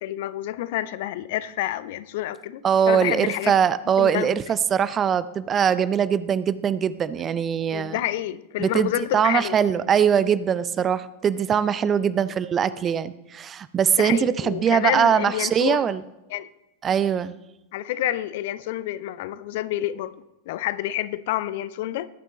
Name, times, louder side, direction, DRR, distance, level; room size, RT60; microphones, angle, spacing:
voice 1, 0.0-2.6 2.9-3.5 4.0-4.4 7.7-9.6 14.0-15.8 16.3-16.5 17.7-20.1 20.5-22.1, left 14 dB, 50° left, 16 dB, 0.5 m, -28 dB
voice 2, 2.6-8.0 8.6-16.0 16.8-17.3, right 8 dB, 25° right, 16 dB, 0.5 m, -22 dB
19.0 x 8.9 x 3.1 m, 0.93 s
figure-of-eight pair, 90°, 0 cm